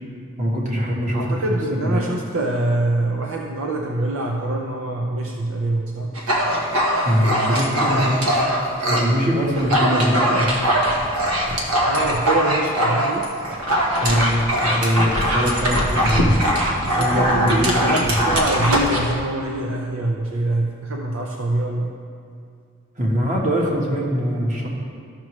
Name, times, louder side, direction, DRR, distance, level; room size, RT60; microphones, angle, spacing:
voice 1, 0.4-2.0 7.0-8.5 8.9-10.5 14.0-16.4 16.9-18.2 23.0-24.7, equal, 35° right, -3 dB, 1.4 m, -22 dB
voice 2, 1.1-6.1 11.9-13.3 16.8-21.9, right 2 dB, 65° right, 1 dB, 0.6 m, -24 dB
Dog, 6.1-9.1 9.4-19.1, equal, 85° right, 1.3 m, -21 dB
13.0 x 5.9 x 3.2 m, 2.3 s
head